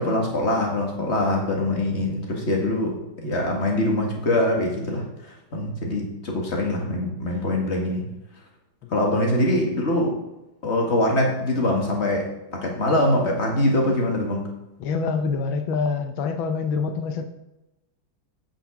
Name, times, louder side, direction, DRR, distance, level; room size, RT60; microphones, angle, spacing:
voice 1, 0.0-8.0 8.9-10.2 10.6-14.5, left 1 dB, 35° left, 0 dB, 2.1 m, -23 dB
voice 2, 14.8-17.2, left 5 dB, 90° left, 7 dB, 1.6 m, -26 dB
9.0 x 5.7 x 6.2 m, 0.96 s
omnidirectional pair, 2.1 m